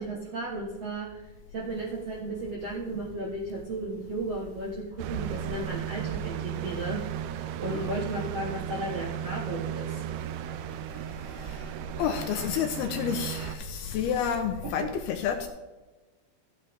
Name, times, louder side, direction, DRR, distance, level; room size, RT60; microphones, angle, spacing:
voice 1, 0.0-4.8 5.1-10.0, right 2 dB, 60° right, -4 dB, 1.6 m, -35 dB
sound 1, 5.0-13.6, right 10 dB, 85° right, 2.9 m, -35 dB
voice 2, 12.0-15.5, left 8 dB, 80° left, 6 dB, 2.4 m, -30 dB
14.0 x 8.8 x 3.6 m, 1.2 s
omnidirectional pair, 5.0 m